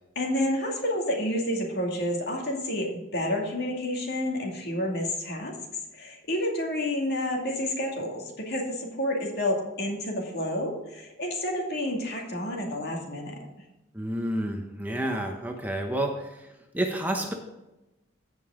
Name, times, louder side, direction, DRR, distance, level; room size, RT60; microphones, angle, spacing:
voice 1, 0.2-2.9 3.1-5.5 5.9-13.5, left 1 dB, 50° left, 0 dB, 2.3 m, -29 dB
voice 2, 13.9-16.5 16.7-17.3, right 1 dB, 10° right, 2 dB, 0.8 m, -29 dB
15.5 x 5.4 x 3.7 m, 0.99 s
head